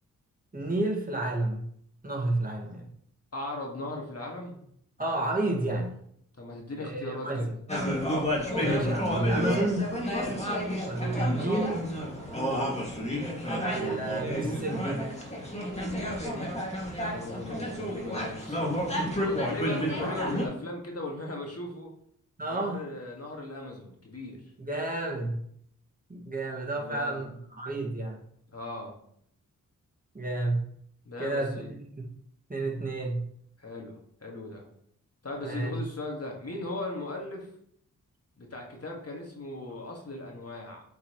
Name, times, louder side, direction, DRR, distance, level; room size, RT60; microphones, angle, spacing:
voice 1, 0.5-1.7 2.0-2.9 5.0-6.0 6.8-7.5 8.6-10.0 10.8-11.9 13.5-15.0 22.4-22.8 24.6-25.4 26.1-28.2 30.1-30.6 31.2-32.1 32.5-33.2 35.4-35.8, right 2 dB, 25° right, -2 dB, 2.0 m, -31 dB
voice 2, 3.3-4.6 6.3-7.5 17.1-21.9 22.5-24.4 26.7-27.2 28.5-29.0 31.1-31.7 33.6-34.6 35.2-37.5 38.4-40.8, left 2 dB, 45° left, 0 dB, 2.0 m, -38 dB
sound 1, 7.7-20.4, equal, 20° left, 2.3 m, -31 dB
8.3 x 4.7 x 3.1 m, 0.68 s
cardioid pair, 45°, 34 cm